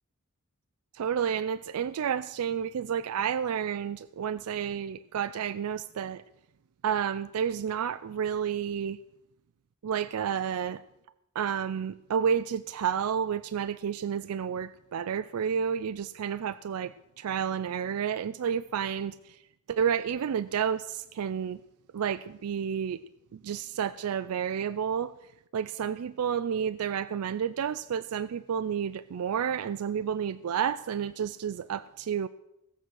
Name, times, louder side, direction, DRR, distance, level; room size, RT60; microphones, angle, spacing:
voice 1, 0.9-6.2 6.8-9.0 9.8-10.8 11.4-19.4 19.7-21.6 21.9-23.0 23.3-25.1 25.5-32.3, right 8 dB, 85° right, 0.4 m, -30 dB
17.0 x 7.5 x 6.3 m
head